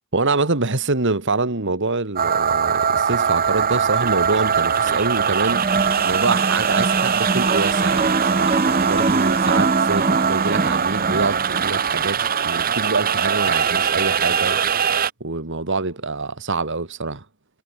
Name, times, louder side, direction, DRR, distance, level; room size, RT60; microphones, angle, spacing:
voice 1, 0.1-5.7 6.0-14.6 15.2-17.2, right 3 dB, 60° right, 2.0 m, -25 dB
sound 1, 2.2-15.1, right 7 dB, 45° right, 1.2 m, -21 dB
sound 2, 5.5-11.8, right 2 dB, 30° right, 0.8 m, -24 dB
head